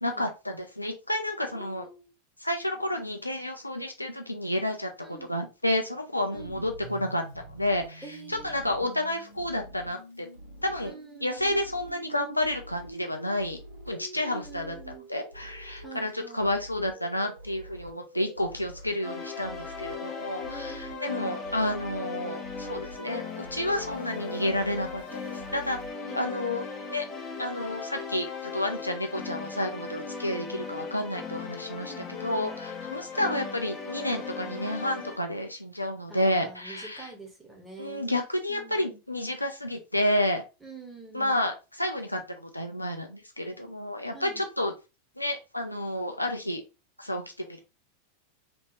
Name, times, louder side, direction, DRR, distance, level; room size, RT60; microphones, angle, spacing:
voice 1, 0.0-1.9 2.4-7.2 7.5-10.3 10.6-10.9 11.2-13.6 13.9-14.8 15.1-25.8 26.1-26.6 26.9-27.0 27.4-37.1 37.8-40.4 41.1-44.7 45.2-46.6 47.0-47.6, left 1 dB, 85° left, 4 dB, 0.4 m, -30 dB
voice 2, 1.5-2.1 5.0-5.3 6.3-6.6 8.0-8.8 10.8-11.6 14.1-15.1 15.8-16.6 20.4-21.4 26.1-26.5 31.8-32.1 36.1-38.2 38.5-39.0 40.6-41.4 44.1-44.4, right 3 dB, 10° right, -1 dB, 1.5 m, -46 dB
sound 1, 6.3-25.9, equal, 70° right, 1.6 m, -47 dB
sound 2, 19.0-35.2, left 5 dB, 30° left, 1.0 m, -38 dB
3.4 x 2.8 x 3.0 m, 0.29 s
figure-of-eight pair, 90°, 0 cm